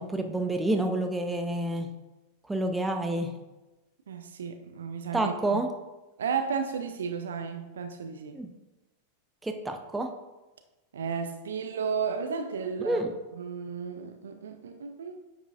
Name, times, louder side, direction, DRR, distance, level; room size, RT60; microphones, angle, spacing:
voice 1, 0.0-1.9 2.5-3.3 5.1-5.7 8.3-8.5 9.4-10.1 12.8-13.1, right 1 dB, 10° right, 0.6 m, -28 dB
voice 2, 4.1-5.6 6.2-8.4 10.9-13.0 13.4-15.2, right 6 dB, 65° right, 0.4 m, -33 dB
9.0 x 4.7 x 2.5 m
figure-of-eight pair, 90°, 0 cm